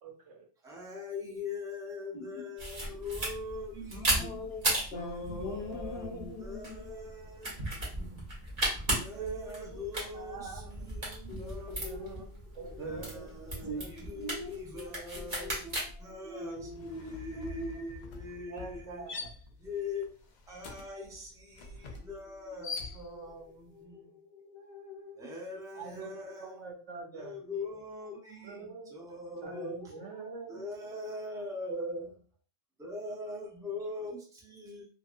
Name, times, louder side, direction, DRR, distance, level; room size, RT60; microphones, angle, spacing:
voice 1, 0.0-0.4 9.1-10.9 11.8-12.3 12.5-13.3 13.8-13.9 14.2-14.3 18.5-19.3 25.7-27.4 28.4-28.9 29.4-30.6, right 4 dB, 70° right, 1.0 m, -44 dB
voice 2, 0.6-4.4 4.9-7.6 9.0-11.9 12.8-15.6 16.0-19.1 19.6-20.1 20.5-24.2 25.2-26.6 27.1-29.9 30.5-32.2 32.8-34.9, left 2 dB, 5° right, 0.4 m, -42 dB
sound 1, 2.6-15.9, right 1 dB, 35° right, 1.0 m, -36 dB
voice 3, 3.9-6.9 11.3-12.4 12.7-12.8 13.6-13.8 14.1-14.9 15.2-15.8 16.2-17.4 22.0-22.1 23.7-25.3 29.4-30.0, left 2 dB, 60° left, 0.8 m, -43 dB
sound 2, 14.4-14.7 15.0-23.4, left 4 dB, 90° left, 0.4 m, -45 dB
2.8 x 2.6 x 2.5 m
omnidirectional pair, 1.3 m